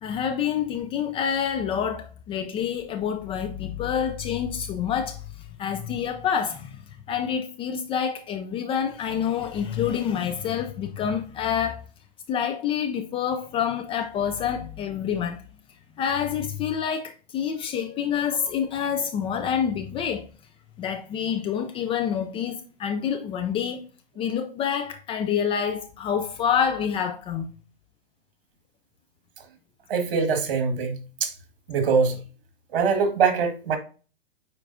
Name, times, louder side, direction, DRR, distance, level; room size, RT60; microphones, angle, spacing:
voice 1, 0.0-5.2 5.6-6.8 7.1-11.8 12.3-15.4 16.0-20.3 20.8-23.8 24.2-27.5, left 8 dB, 15° left, 0.4 m, -27 dB
voice 2, 29.9-31.3 31.7-32.2 32.7-33.8, right 5 dB, 60° right, 1.7 m, -23 dB
8.6 x 4.5 x 2.6 m
hypercardioid pair, 115°, 31 cm